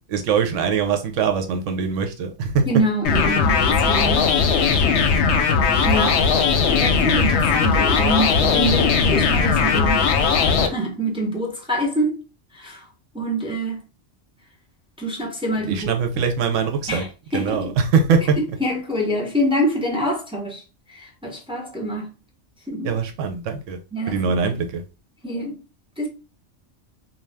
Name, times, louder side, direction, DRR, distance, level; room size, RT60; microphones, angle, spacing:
voice 1, 0.0-2.7 15.6-17.0 17.3-18.4 22.8-23.8 24.1-24.8, right 5 dB, 80° right, 0.9 m, -22 dB
voice 2, 2.7-4.3 5.8-6.3 6.8-10.2 10.6-12.2 12.5-12.8 13.1-13.8 15.0-15.8 16.9-17.1 17.3-17.7 18.4-20.6 20.9-22.1 22.7-22.9 23.9-24.5 25.2-25.6 26.0-26.1, right 1 dB, 5° right, 0.4 m, -25 dB
sound 1, 3.0-10.7, left 5 dB, 70° left, 0.8 m, -18 dB
2.5 x 2.2 x 3.3 m
omnidirectional pair, 1.3 m